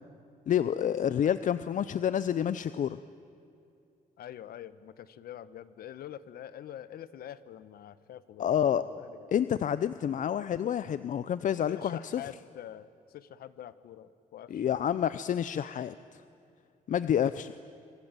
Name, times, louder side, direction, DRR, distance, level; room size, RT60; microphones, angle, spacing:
voice 1, 0.5-3.0 8.4-8.8 9.3-12.2 14.5-16.2 16.9-17.5, left 9 dB, 55° left, 14 dB, 0.7 m, -28 dB
voice 2, 4.2-9.3 9.8-10.2 11.5-14.8, left 10 dB, 85° left, 15 dB, 1.1 m, -46 dB
26.0 x 25.5 x 9.1 m, 2.6 s
cardioid pair, 125°, 15 cm